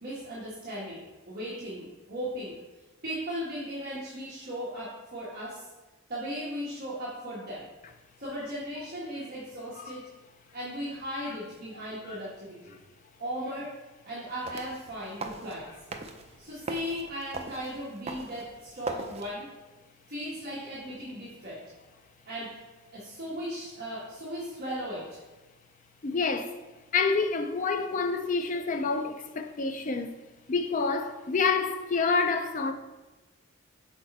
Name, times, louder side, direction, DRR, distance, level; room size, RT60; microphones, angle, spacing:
voice 1, 0.0-2.5 3.0-5.7 6.1-7.7 8.2-10.0 10.5-12.7 13.2-13.7 14.0-15.7 16.4-19.5 20.1-21.6 22.3-22.5 22.9-25.2, equal, 45° right, 1.5 m, -37 dB
sound 1, 14.3-19.3, right 3 dB, 30° right, 0.4 m, -40 dB
voice 2, 26.0-26.6 26.9-30.1 30.5-32.7, left 4 dB, 35° left, 0.4 m, -28 dB
6.6 x 4.4 x 4.2 m
head